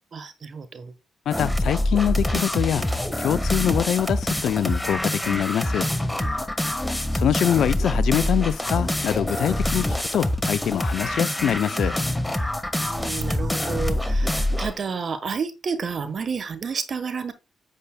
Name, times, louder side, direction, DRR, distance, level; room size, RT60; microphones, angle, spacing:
voice 1, 0.1-0.9 6.2-6.6 12.8-17.3, right 5 dB, 55° right, 1.3 m, -31 dB
voice 2, 1.3-2.9 3.2-5.9 7.1-11.9, left 9 dB, 75° left, 0.5 m, -24 dB
sound 1, 1.3-14.8, left 1 dB, 10° left, 1.5 m, -25 dB
10.0 x 8.1 x 2.3 m
supercardioid pair, 50°, 0 cm